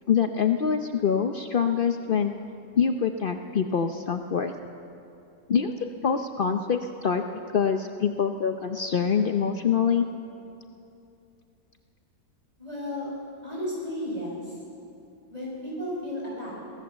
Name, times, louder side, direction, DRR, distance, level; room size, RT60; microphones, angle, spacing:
voice 1, 0.1-2.3 2.8-4.5 5.5-7.2 7.5-10.1, left 7 dB, 70° left, 6 dB, 0.5 m, -25 dB
voice 2, 12.6-13.1 13.4-14.5 15.3-16.5, left 1 dB, 20° right, -4 dB, 6.6 m, -33 dB
23.0 x 17.0 x 7.3 m, 2.7 s
omnidirectional pair, 1.9 m